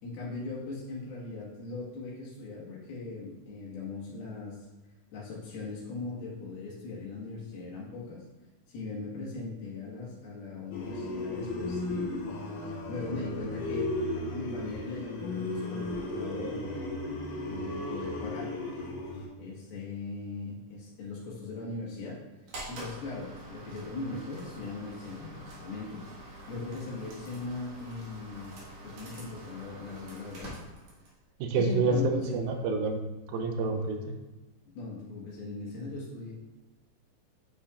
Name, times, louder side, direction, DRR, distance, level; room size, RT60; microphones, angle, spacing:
voice 1, 0.0-4.7 5.1-8.2 8.7-12.4 12.7-16.6 17.5-18.5 19.4-28.6 28.8-30.6 31.5-32.4 34.7-36.3, left 3 dB, 90° left, -6 dB, 3.3 m, -39 dB
sound 1, 10.7-19.3, left 2 dB, 70° left, 2.8 m, -35 dB
sound 2, 22.5-31.2, right 1 dB, 55° right, 2.4 m, -46 dB
voice 2, 31.4-33.0 33.3-34.0, right 3 dB, 85° right, 4 dB, 2.4 m, -28 dB
8.7 x 5.6 x 2.4 m, 1.1 s
omnidirectional pair, 4.2 m